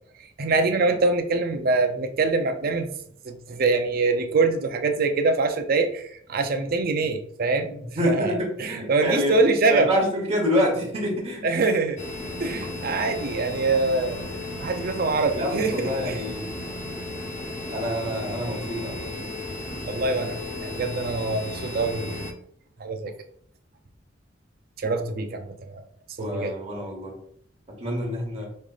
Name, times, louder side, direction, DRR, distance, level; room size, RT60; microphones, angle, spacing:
voice 1, 0.4-2.9 3.2-7.7 8.0-9.9 11.4-12.0 12.4-14.2 14.6-16.1 19.9-22.3 22.8-23.1 24.8-25.8 26.2-26.5, right 3 dB, 50° right, 7 dB, 0.5 m, -24 dB
voice 2, 7.9-9.4 9.7-11.5 12.5-12.6 15.3-16.5 17.7-19.1 26.2-27.2 27.8-28.5, equal, 35° right, 0 dB, 1.2 m, -27 dB
sound 1, 12.0-22.3, left 2 dB, 40° left, 0.6 m, -34 dB
5.3 x 3.2 x 2.4 m, 0.65 s
head